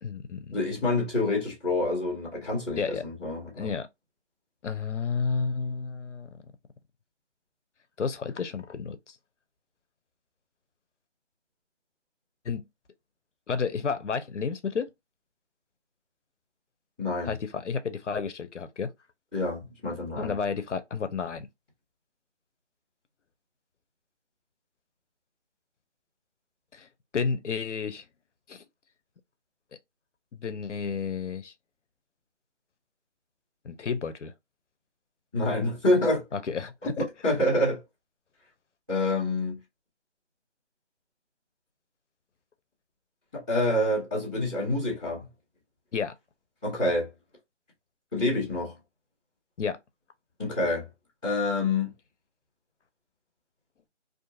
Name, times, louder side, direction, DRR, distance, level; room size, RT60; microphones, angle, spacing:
voice 1, 0.0-0.6 2.7-3.0 3.6-3.9 4.6-6.3 8.0-9.2 12.4-12.6 13.5-14.9 17.2-18.9 20.2-21.5 26.7-26.9 27.1-28.0 28.5-28.6 30.3-31.5 33.6-34.3 36.3-37.1 45.9-46.1 49.6-49.8, left 5 dB, 80° left, 0.6 m, -31 dB
voice 2, 0.5-3.7 17.0-17.3 19.3-20.3 35.3-36.2 37.0-37.8 38.9-39.6 43.3-45.3 46.6-47.1 48.1-48.7 50.4-50.9 51.2-51.9, left 2 dB, 5° right, 1.0 m, -27 dB
2.5 x 2.5 x 2.4 m
figure-of-eight pair, 170°, 36 cm